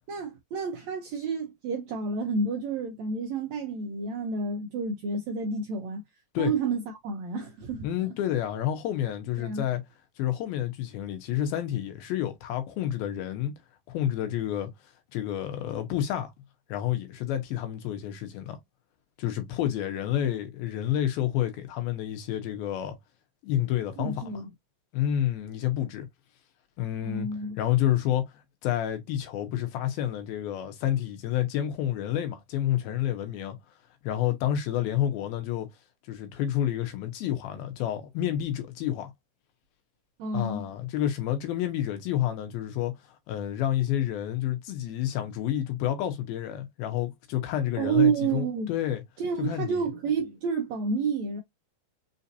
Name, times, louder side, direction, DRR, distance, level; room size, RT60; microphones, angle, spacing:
voice 1, 0.1-6.0 6.4-8.1 9.4-9.6 24.0-24.5 27.0-27.6 40.2-40.7 47.8-48.7 49.2-51.4, right 5 dB, 85° right, 1.6 m, -29 dB
voice 2, 7.8-9.8 10.2-13.5 13.9-14.7 15.1-16.3 16.7-18.6 19.2-23.0 23.4-24.4 24.9-26.1 26.8-27.3 27.6-28.3 28.6-33.6 34.0-35.7 36.1-39.1 40.3-42.9 43.3-49.0 49.4-49.9, left 11 dB, 85° left, 2.8 m, -29 dB
6.2 x 2.7 x 2.5 m
omnidirectional pair, 4.3 m